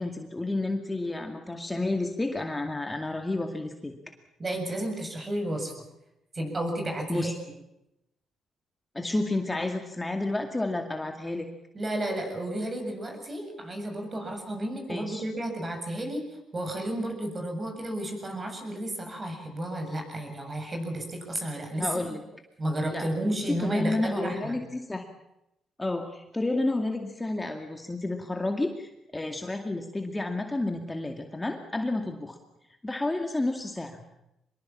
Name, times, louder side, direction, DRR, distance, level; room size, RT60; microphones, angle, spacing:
voice 1, 0.0-3.9 7.1-7.3 8.9-11.5 14.9-15.2 21.8-22.2 22.9-25.0 25.8-32.4 32.8-34.0, left 2 dB, 15° left, 4 dB, 2.2 m, -30 dB
voice 2, 4.4-5.8 6.3-7.3 11.7-22.0 22.6-24.6, right 1 dB, 30° right, 4 dB, 7.5 m, -32 dB
24.0 x 22.0 x 7.3 m, 0.86 s
cardioid pair, 90°, 0 cm